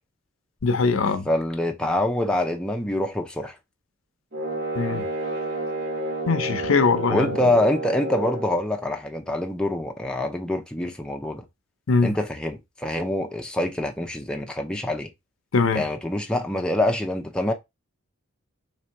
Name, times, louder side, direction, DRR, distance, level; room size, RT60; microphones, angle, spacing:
voice 1, 0.6-1.3 4.7-5.0 6.3-7.3 11.9-12.1 15.5-15.8, left 4 dB, 75° left, 0.6 m, -21 dB
voice 2, 1.3-3.6 7.1-11.4 12.0-15.1 15.7-17.5, left 1 dB, 5° left, 0.6 m, -25 dB
sound 1, 4.3-8.6, right 1 dB, 55° right, 1.4 m, -30 dB
3.3 x 2.7 x 4.5 m
head